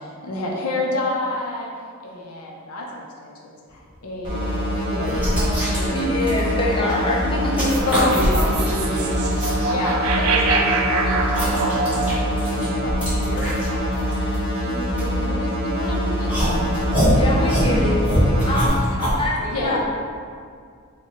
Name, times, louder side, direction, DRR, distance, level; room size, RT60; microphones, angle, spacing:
voice 1, 0.0-1.7 2.0-3.4 3.7-5.1 7.9-8.8 9.6-12.2 12.5-14.3 14.6-16.5 17.3-17.9 19.5-19.8, left 2 dB, 75° left, -2 dB, 0.7 m, -29 dB
sound 1, 4.0-4.1 4.8-7.1 7.3-9.6 10.1-15.7 16.3-19.2, equal, 5° right, 1.4 m, -24 dB
sound 2, 4.2-18.7, equal, 20° right, 1.5 m, -24 dB
voice 2, 4.8-6.4 7.6-8.0 8.8-9.6 19.4-19.8, left 1 dB, 40° right, -7 dB, 1.2 m, -32 dB
voice 3, 5.9-8.0 17.1-18.0 18.5-19.8, left 1 dB, 20° left, -3 dB, 0.5 m, -25 dB
sound 3, 7.7-14.0, right 3 dB, 75° right, 0.4 m, -26 dB
4.1 x 2.3 x 3.8 m, 2.1 s
head